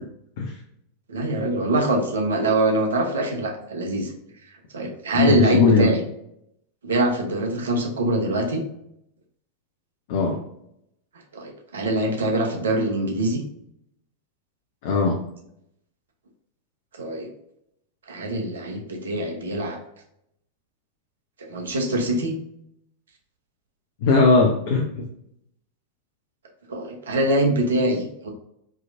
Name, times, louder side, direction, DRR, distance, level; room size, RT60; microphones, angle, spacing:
voice 1, 1.1-4.1 4.7-6.0 6.8-8.6 11.3-13.4 16.9-17.3 18.1-19.8 21.4-22.3 26.7-28.3, right 1 dB, 70° right, 3 dB, 1.0 m, -24 dB
voice 2, 5.1-5.9 10.1-10.4 14.8-15.2 24.0-25.1, left 4 dB, 55° left, 0 dB, 0.8 m, -19 dB
4.7 x 3.1 x 2.5 m, 0.76 s
figure-of-eight pair, 90°, 0 cm